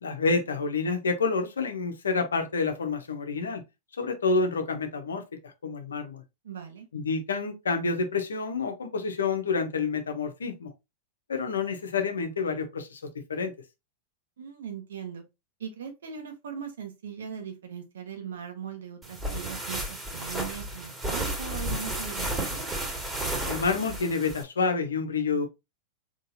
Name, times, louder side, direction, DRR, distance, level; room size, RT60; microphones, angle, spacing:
voice 1, 0.0-3.6 4.0-6.2 6.9-10.7 11.3-13.0 13.3-13.5 23.5-25.5, left 4 dB, 85° left, 0.9 m, -28 dB
voice 2, 6.4-6.9 14.4-15.2 15.6-22.7, right 7 dB, 75° right, 1.1 m, -39 dB
sound 1, 19.0-24.4, right 1 dB, 15° right, 2.0 m, -33 dB
4.0 x 3.1 x 2.7 m
hypercardioid pair, 100°, 0 cm